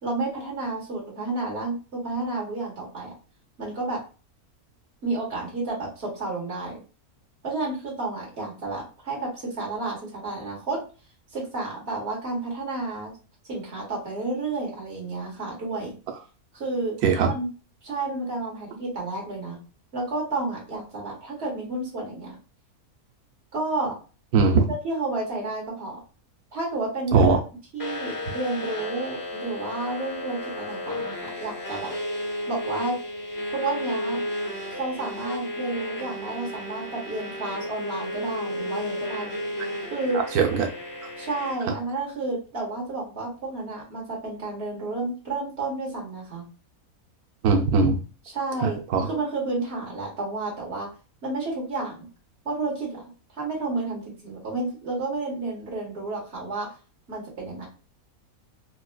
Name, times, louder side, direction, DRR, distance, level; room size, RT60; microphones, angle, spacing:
voice 1, 0.0-3.1 3.6-4.0 5.0-6.8 7.4-10.8 11.3-13.1 13.5-16.0 16.5-17.0 17.2-17.5 17.8-19.6 19.9-22.3 23.5-23.9 24.7-26.0 26.5-27.4 27.7-31.9 32.5-33.0 33.5-34.2 34.7-39.3 39.9-40.2 41.2-46.4 48.2-50.9 51.2-52.1 52.4-53.0 53.4-56.7 57.1-57.7, right 2 dB, 45° right, -3 dB, 1.6 m, -31 dB
voice 2, 24.3-24.6 27.1-27.4 40.4-40.7 47.4-48.0 48.9-49.1, right 4 dB, 90° right, 3 dB, 1.1 m, -19 dB
sound 1, 27.8-41.5, left 1 dB, 20° left, 0.7 m, -33 dB
4.7 x 2.0 x 2.2 m, 0.35 s
omnidirectional pair, 1.6 m